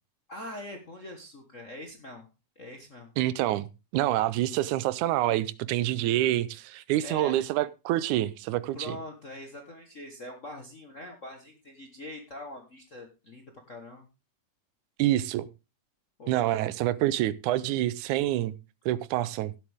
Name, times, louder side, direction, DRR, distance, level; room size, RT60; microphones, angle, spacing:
voice 1, 0.3-2.3 2.5-3.1 7.0-7.4 8.7-14.1 16.2-16.7, left 1 dB, 55° left, 0.8 m, -43 dB
voice 2, 3.2-3.7 3.9-9.0 15.0-15.5 16.3-18.5 18.9-19.5, right 14 dB, 85° right, 2.1 m, -27 dB
16.0 x 8.0 x 3.5 m
omnidirectional pair, 3.4 m